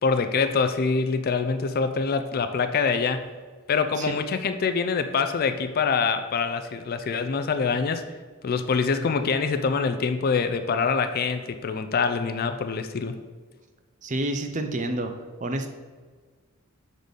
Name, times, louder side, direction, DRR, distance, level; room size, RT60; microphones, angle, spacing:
voice 1, 0.0-3.3 3.7-8.0 8.4-13.2, left 5 dB, 40° left, 9 dB, 0.4 m, -25 dB
voice 2, 14.0-15.1 15.4-15.7, right 1 dB, 35° right, 6 dB, 0.5 m, -28 dB
6.3 x 4.0 x 5.1 m, 1.5 s
head